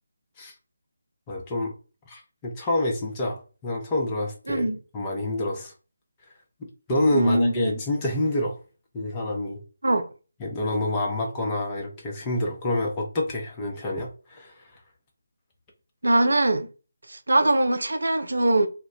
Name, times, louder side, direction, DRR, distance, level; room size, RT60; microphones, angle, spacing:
voice 1, 1.3-1.7 2.1-5.7 6.9-8.6 8.9-9.6 10.4-14.5, left 1 dB, 20° left, 0.6 m, -27 dB
voice 2, 7.1-7.7 9.8-10.0 16.0-16.7 17.1-18.7, right 1 dB, 75° right, 0.4 m, -22 dB
2.2 x 2.0 x 3.7 m
figure-of-eight pair, 155°, 0 cm